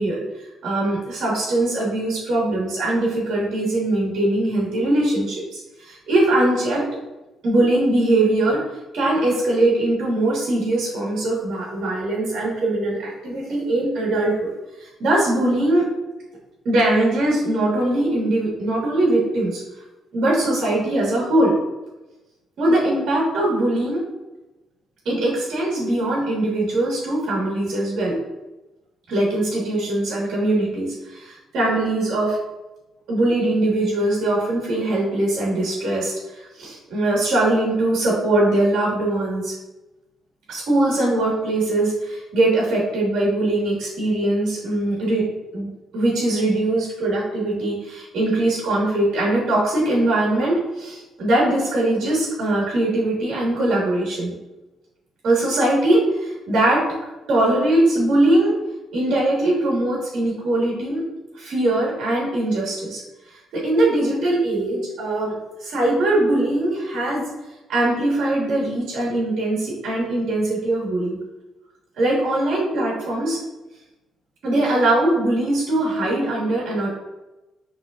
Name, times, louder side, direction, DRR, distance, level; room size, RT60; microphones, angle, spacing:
voice 1, 0.0-6.8 7.4-8.6 8.9-14.5 14.8-15.8 16.6-19.6 20.1-21.5 22.6-24.0 25.0-28.2 29.1-32.4 33.1-39.5 40.5-45.3 45.5-54.3 55.2-56.9 57.3-58.6 58.9-61.0 61.3-63.0 63.3-67.3 67.7-71.2 72.0-73.4 74.4-76.9, right 1 dB, 70° right, -4 dB, 1.5 m, -21 dB
6.1 x 3.2 x 2.4 m, 1.0 s
cardioid pair, 90°, 0 cm